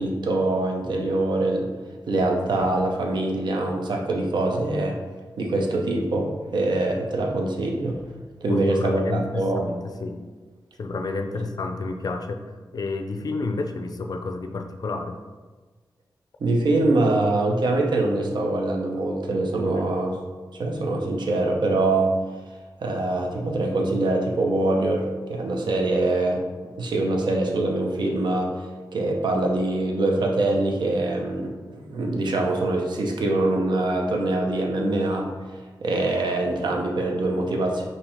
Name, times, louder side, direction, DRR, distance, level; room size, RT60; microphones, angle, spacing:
voice 1, 0.0-1.7 2.1-5.0 5.4-8.0 8.4-9.7 11.3-11.4 16.4-20.2 20.5-22.1 22.8-26.4 26.8-28.6 28.9-35.3 35.8-37.8, right 2 dB, 75° right, 1 dB, 0.7 m, -24 dB
voice 2, 8.5-10.2 10.8-12.4 12.7-15.2 19.6-19.8, left 3 dB, 55° left, 5 dB, 0.4 m, -30 dB
5.3 x 2.8 x 3.4 m, 1.3 s
wide cardioid pair, 90°, 8 cm